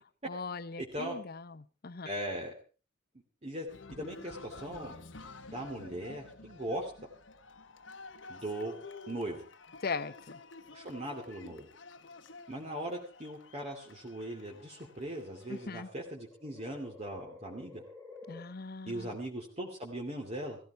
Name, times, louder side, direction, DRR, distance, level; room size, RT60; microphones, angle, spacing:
voice 1, 0.0-2.1 9.8-10.4 15.5-15.9 18.3-19.1, left 4 dB, 55° left, 15 dB, 0.8 m, -40 dB
voice 2, 0.8-1.2 2.0-2.5 3.4-4.9 5.5-6.9 8.3-8.7 9.1-9.4 10.7-11.7 12.5-17.8 18.9-20.6, right 1 dB, 35° right, -1 dB, 2.6 m, -39 dB
Cheering, 3.7-15.7, left 3 dB, 70° left, 1.2 m, -51 dB
sound 1, 9.8-10.7 11.8-12.3 13.2-18.4, left 3 dB, 15° right, 4.3 m, -54 dB
17.0 x 15.0 x 4.6 m, 0.37 s
head